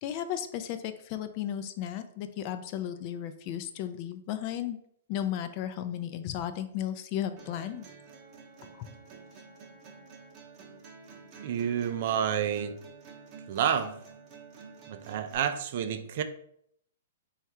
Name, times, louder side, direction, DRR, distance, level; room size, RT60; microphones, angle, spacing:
voice 1, 0.0-4.8 5.1-7.9 8.8-8.9, left 10 dB, 40° left, 0.3 m, -34 dB
sound 1, 7.4-15.4, right 5 dB, 30° right, 0.7 m, -50 dB
voice 2, 11.4-12.8 13.5-14.0 14.9-16.2, right 9 dB, 55° right, 0.3 m, -29 dB
3.3 x 2.4 x 4.3 m
hypercardioid pair, 145°, 0 cm